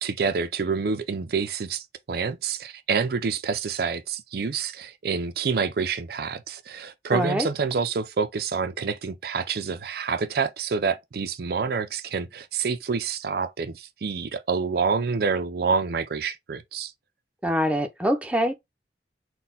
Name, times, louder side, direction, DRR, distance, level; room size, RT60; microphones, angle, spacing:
voice 1, 0.0-16.9, right 5 dB, 60° right, 0.5 m, -27 dB
voice 2, 7.1-7.5 17.4-18.5, equal, 10° right, 0.6 m, -24 dB
4.1 x 2.2 x 4.0 m
head